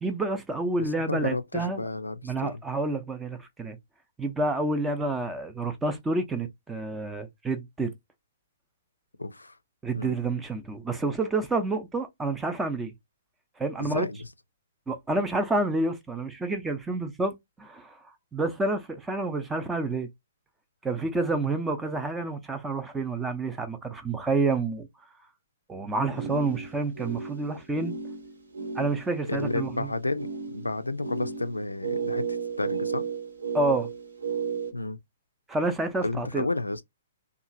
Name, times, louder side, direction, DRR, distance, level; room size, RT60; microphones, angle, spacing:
voice 1, 0.0-1.8 2.2-3.8 4.2-7.9 9.8-12.9 13.6-14.1 14.9-18.0 18.3-20.1 20.8-24.9 25.7-27.9 28.7-29.9 33.5-33.9 35.5-36.4, right 2 dB, 10° right, 0.6 m, -29 dB
voice 2, 0.8-2.6 9.2-9.6 9.9-10.2 13.8-14.3 26.1-26.2 29.3-33.1 34.7-35.0 36.0-36.8, left 2 dB, 90° left, 0.4 m, -32 dB
sound 1, 26.1-34.7, right 5 dB, 75° right, 1.3 m, -34 dB
2.8 x 2.4 x 2.6 m
figure-of-eight pair, 120°, 0 cm